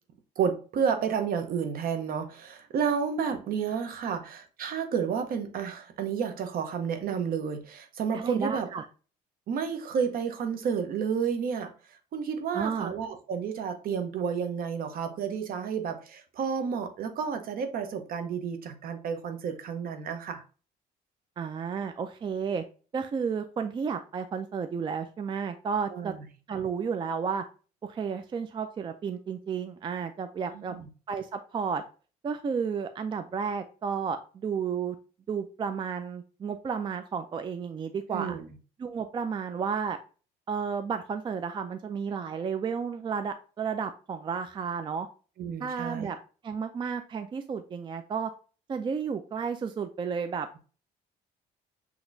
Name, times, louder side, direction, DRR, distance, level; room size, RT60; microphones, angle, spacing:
voice 1, 0.4-8.7 9.5-11.7 12.1-20.4 25.9-26.2 30.5-30.8 38.1-38.5 45.4-46.1, right 6 dB, 60° right, 0.9 m, -31 dB
voice 2, 8.1-8.9 12.5-12.9 21.4-22.6 22.9-26.1 26.5-27.4 27.8-30.7 31.1-31.8 32.2-35.0 35.3-38.4 38.8-40.0 40.5-45.1 45.6-46.2 46.4-48.3 48.7-50.5, right 6 dB, 30° right, 0.4 m, -32 dB
6.1 x 2.9 x 2.6 m
cardioid pair, 110°, 17 cm